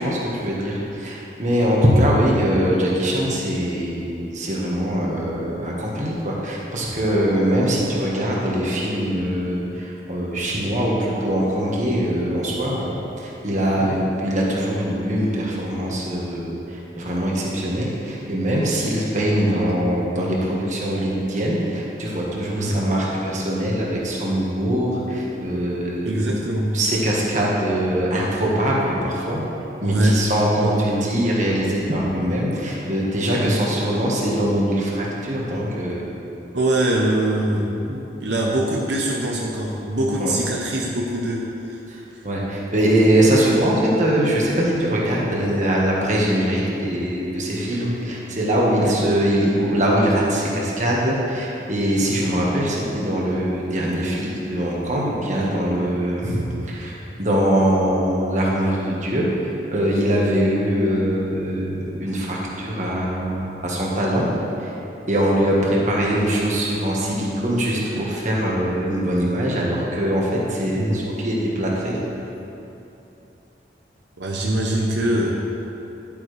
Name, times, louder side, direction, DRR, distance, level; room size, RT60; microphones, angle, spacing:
voice 1, 0.0-26.2 26.7-29.4 29.8-36.0 37.9-38.0 40.2-40.4 41.9-59.3 59.7-64.3 64.6-64.7 65.1-71.9, equal, 45° right, -4 dB, 1.6 m, -22 dB
voice 2, 19.4-19.9 22.5-22.8 26.0-26.8 29.8-30.2 30.5-30.9 33.4-33.6 36.5-37.7 38.2-41.8 48.7-49.0 70.7-71.1 74.2-75.3, right 1 dB, 85° right, -2 dB, 1.0 m, -23 dB
11.0 x 8.6 x 3.4 m, 2.9 s
head